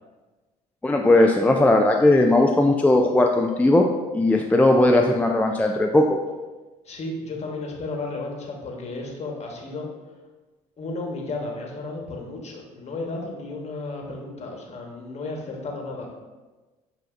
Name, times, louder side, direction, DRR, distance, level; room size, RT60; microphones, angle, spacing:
voice 1, 0.8-3.9 4.1-6.2, left 2 dB, 10° left, 2 dB, 0.4 m, -18 dB
voice 2, 6.8-9.9 10.8-16.1, left 2 dB, 45° left, 0 dB, 1.2 m, -33 dB
7.5 x 2.7 x 2.5 m, 1.2 s
supercardioid pair, 70°, 16 cm